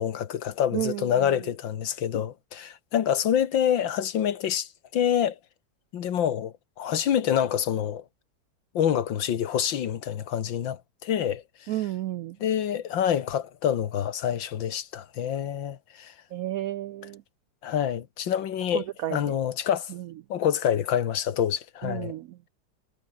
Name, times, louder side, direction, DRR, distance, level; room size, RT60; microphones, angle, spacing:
voice 1, 0.0-5.4 5.9-8.0 8.7-11.4 12.4-16.1 17.6-19.9 20.3-22.2, left 9 dB, 80° left, 2.0 m, -27 dB
voice 2, 0.7-1.3 11.7-12.4 16.3-17.2 18.7-19.4 19.9-20.1 21.8-22.4, right 14 dB, 85° right, 0.7 m, -32 dB
omnidirectional pair, 2.1 m